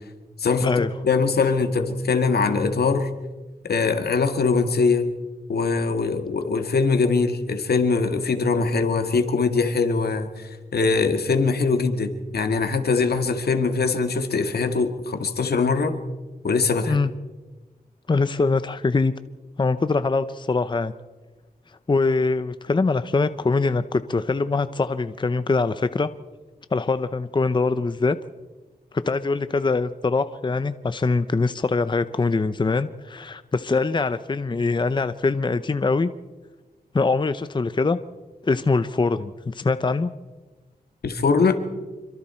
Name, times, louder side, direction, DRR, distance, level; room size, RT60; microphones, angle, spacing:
voice 1, 0.4-3.1 3.6-5.1 5.5-16.0 16.4-17.0 41.0-41.6, left 4 dB, 75° left, 7 dB, 2.0 m, -22 dB
voice 2, 18.1-19.1 19.6-20.9 21.9-26.1 26.7-28.2 28.9-36.1 36.9-38.0 38.4-40.1, left 3 dB, 30° left, 12 dB, 0.7 m, -23 dB
26.5 x 24.0 x 4.4 m, 1.2 s
wide cardioid pair, 90°, 16 cm